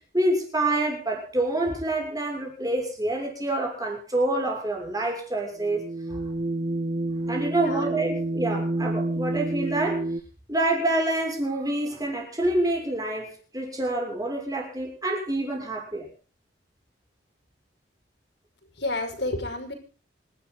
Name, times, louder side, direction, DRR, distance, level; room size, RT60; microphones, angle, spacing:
voice 1, 0.1-6.2 7.3-10.1 10.5-16.1, right 1 dB, 20° right, 0 dB, 6.5 m, -27 dB
sound 1, 5.6-10.2, right 2 dB, 45° right, 1.3 m, -29 dB
voice 2, 18.7-19.7, left 2 dB, 60° left, 5 dB, 6.0 m, -30 dB
27.0 x 12.5 x 4.0 m, 0.38 s
head